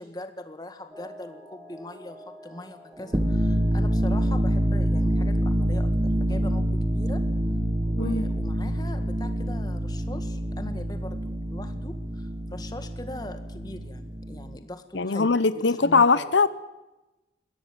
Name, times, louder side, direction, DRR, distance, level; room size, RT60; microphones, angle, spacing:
voice 1, 0.0-7.2 7.9-16.3, left 1 dB, 20° left, 8 dB, 1.7 m, -41 dB
sound 1, 0.9-13.8 14.2-14.3, equal, ahead, 7.4 m, -52 dB
sound 2, 3.0-14.6, right 1 dB, 20° right, 1.3 m, -26 dB
voice 2, 14.9-16.5, left 4 dB, 85° left, 15 dB, 0.9 m, -21 dB
21.5 x 17.0 x 9.0 m, 1.0 s
head